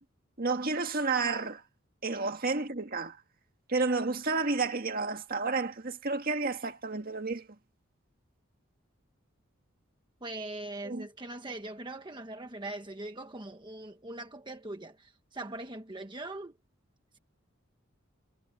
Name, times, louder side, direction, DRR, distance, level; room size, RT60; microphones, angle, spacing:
voice 1, 0.4-1.6 2.0-3.2 3.7-7.5 10.8-11.1, right 3 dB, 45° right, 1.9 m, -31 dB
voice 2, 10.2-16.5, right 2 dB, 25° right, 1.2 m, -41 dB
head